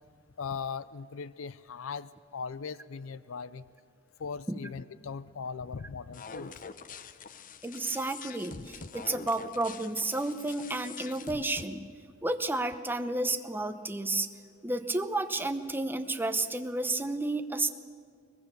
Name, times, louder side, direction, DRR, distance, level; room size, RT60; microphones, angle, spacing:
voice 1, 0.4-3.6 4.2-6.5, left 5 dB, 80° left, 17 dB, 0.5 m, -39 dB
sound 1, 6.1-11.6, left 5 dB, 40° left, 0.8 m, -45 dB
voice 2, 7.6-11.9 12.2-14.3 14.6-17.7, right 2 dB, 10° right, 8 dB, 0.9 m, -31 dB
23.0 x 20.0 x 6.9 m, 2.2 s
head